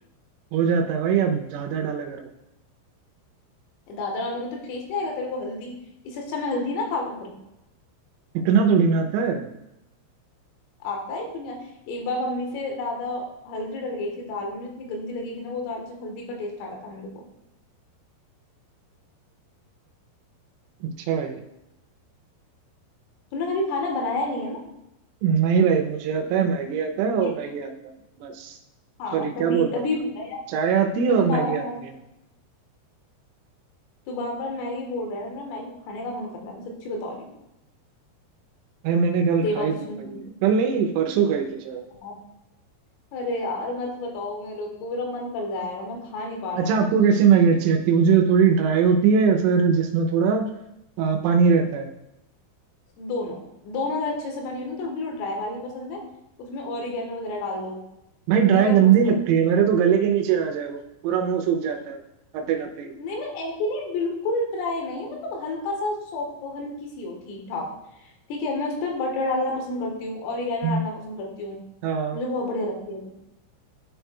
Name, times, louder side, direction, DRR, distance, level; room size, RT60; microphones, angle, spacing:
voice 1, 0.5-2.3 8.5-9.5 20.8-21.4 25.2-27.9 28.2-28.6 29.1-29.9 30.5-31.6 38.8-39.7 40.1-41.8 46.6-50.5 51.0-51.9 58.3-62.0 62.3-62.9 70.6-70.8 71.8-72.2, right 6 dB, 80° right, 5 dB, 3.1 m, -21 dB
voice 2, 3.9-5.8 6.1-7.3 10.8-17.3 23.3-24.6 27.2-27.3 29.0-30.4 31.1-31.8 34.1-37.3 39.4-40.3 42.0-42.1 43.1-46.9 53.0-53.4 53.7-56.0 56.4-57.8 58.3-59.5 62.8-67.7 68.0-71.6 72.1-73.2, left 2 dB, 85° left, 1 dB, 3.8 m, -30 dB
12.5 x 4.5 x 2.2 m, 0.87 s
omnidirectional pair, 5.8 m